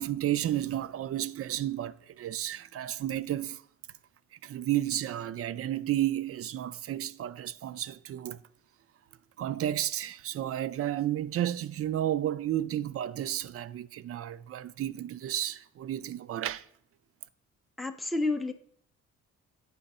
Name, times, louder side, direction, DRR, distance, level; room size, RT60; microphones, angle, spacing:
voice 1, 0.0-3.6 4.4-8.4 9.4-16.7, right 12 dB, 50° right, 0.4 m, -32 dB
voice 2, 17.8-18.5, left 2 dB, ahead, 0.5 m, -30 dB
8.9 x 3.4 x 5.4 m
cardioid pair, 90°, 30 cm